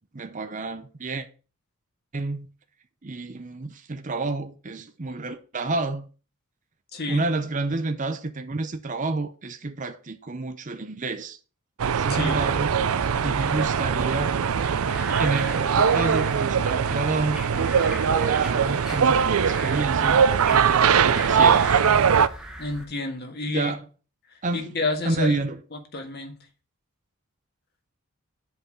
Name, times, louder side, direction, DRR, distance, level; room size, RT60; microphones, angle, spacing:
voice 1, 0.1-1.3 2.1-2.5 3.0-6.1 7.1-11.4 11.9-12.7 13.2-14.3 15.2-21.8 23.5-23.9 24.4-24.7 25.1-25.6, right 3 dB, 35° right, 0.6 m, -29 dB
voice 2, 6.9-7.2 12.1-12.4 22.6-23.7 24.5-25.4 25.7-26.3, left 2 dB, 45° left, 1.6 m, -30 dB
sound 1, 11.8-22.3, right 7 dB, 80° right, 0.5 m, -21 dB
sound 2, 12.9-22.8, right 1 dB, 5° right, 1.0 m, -38 dB
8.0 x 4.1 x 6.2 m
head